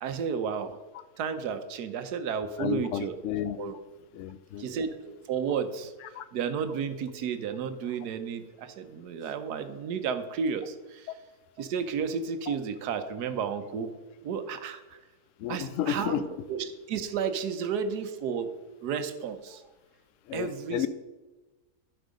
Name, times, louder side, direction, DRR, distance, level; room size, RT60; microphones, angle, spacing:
voice 1, 0.0-0.8 1.2-3.2 3.6-3.8 4.6-5.9 6.3-11.1 11.6-13.9 14.2-14.8 15.5-16.2 16.5-18.5 18.8-19.6 20.3-20.9, right 6 dB, 90° right, 9 dB, 1.3 m, -32 dB
voice 2, 2.6-3.7 4.1-4.6 6.2-6.3 12.5-12.6 15.4-16.3 20.3-20.9, left 10 dB, 70° left, 14 dB, 0.8 m, -32 dB
11.5 x 4.7 x 5.1 m, 1.2 s
omnidirectional pair, 1.7 m